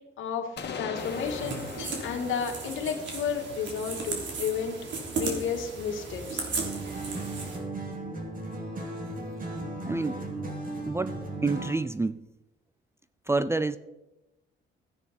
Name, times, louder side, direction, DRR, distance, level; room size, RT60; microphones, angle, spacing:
voice 1, 0.2-4.8 5.2-6.5, left 6 dB, 80° left, 4 dB, 1.9 m, -32 dB
sound 1, 0.6-4.4, left 5 dB, 60° left, 1.7 m, -40 dB
sound 2, 1.0-7.6, right 4 dB, 70° right, 3.4 m, -36 dB
sound 3, 6.6-11.9, right 2 dB, 45° right, 2.6 m, -36 dB
voice 2, 9.8-10.2 10.9-12.2 13.3-13.8, right 3 dB, 15° right, 14 dB, 0.5 m, -28 dB
14.5 x 9.9 x 4.3 m, 0.95 s
cardioid pair, 90°, 20 cm